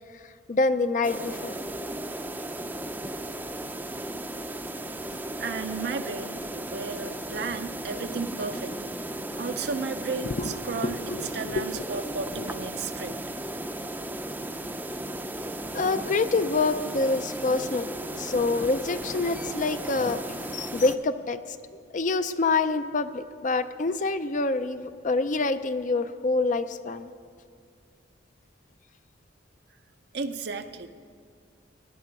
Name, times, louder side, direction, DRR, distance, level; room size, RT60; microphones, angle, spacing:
voice 1, 0.5-1.5 10.2-11.6 15.7-17.9 18.1-27.1, left 3 dB, 40° left, 11 dB, 0.5 m, -27 dB
sound 1, 1.0-20.9, right 1 dB, 10° right, 0.5 m, -35 dB
voice 2, 5.4-8.9 9.4-13.2 30.1-30.9, right 4 dB, 60° right, 7 dB, 0.6 m, -34 dB
16.5 x 11.0 x 6.0 m, 2.3 s
head